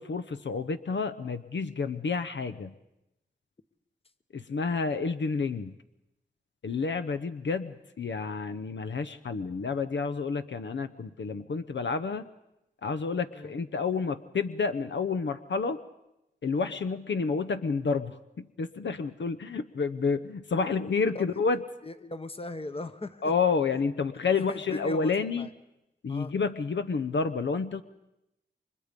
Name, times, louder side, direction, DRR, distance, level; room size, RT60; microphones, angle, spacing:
voice 1, 0.0-2.7 4.3-5.8 6.6-12.2 12.8-15.8 16.4-21.6 23.2-25.5 26.0-27.8, left 4 dB, 70° left, 10 dB, 0.8 m, -29 dB
voice 2, 21.8-23.2 24.3-25.5 26.1-26.3, left 3 dB, 30° left, 10 dB, 1.2 m, -39 dB
29.5 x 24.5 x 5.2 m, 0.89 s
wide cardioid pair, 120°, 19 cm